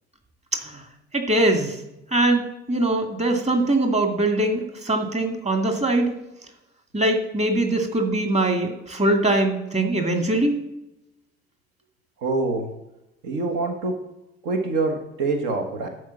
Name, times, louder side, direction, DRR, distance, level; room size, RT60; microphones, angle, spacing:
voice 1, 0.5-0.8 1.1-1.8 2.1-6.1 6.9-10.7, right 1 dB, 20° right, 4 dB, 2.2 m, -22 dB
voice 2, 12.2-12.7 13.2-13.9 14.4-15.9, right 3 dB, 65° right, 4 dB, 1.4 m, -25 dB
12.5 x 4.8 x 7.3 m, 0.91 s
figure-of-eight pair, 45°, 32 cm